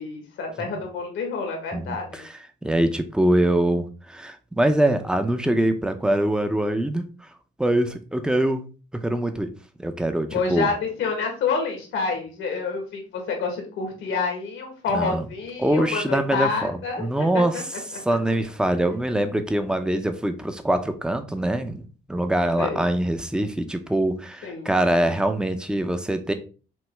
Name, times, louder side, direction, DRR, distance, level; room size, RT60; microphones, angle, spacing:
voice 1, 0.0-2.2 10.3-17.6 22.6-22.8 24.4-24.7, left 4 dB, 80° left, 2 dB, 1.5 m, -28 dB
voice 2, 1.7-2.3 2.6-7.3 7.6-8.6 8.9-10.7 14.9-15.3 15.6-17.6 17.9-26.3, right 1 dB, 5° right, 8 dB, 0.6 m, -24 dB
6.1 x 2.1 x 3.4 m, 0.35 s
cardioid pair, 90°, 20 cm